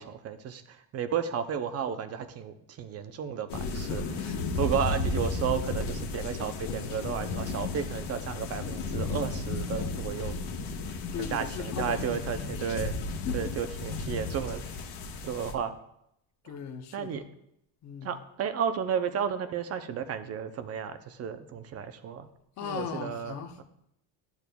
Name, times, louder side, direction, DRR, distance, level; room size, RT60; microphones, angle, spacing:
voice 1, 0.0-4.0 4.6-10.4 11.2-12.9 13.3-14.8 15.2-15.7 16.4-16.5 16.9-17.2 18.0-22.3 22.6-23.6, right 7 dB, 35° right, 0.6 m, -33 dB
sound 1, 3.5-15.5, left 3 dB, 80° left, 1.3 m, -34 dB
voice 2, 3.7-4.5 11.1-12.7 13.3-13.5 16.4-17.3 17.8-18.1 22.6-23.6, left 7 dB, 35° left, 0.8 m, -38 dB
12.0 x 7.1 x 2.3 m
cardioid pair, 130°, 46 cm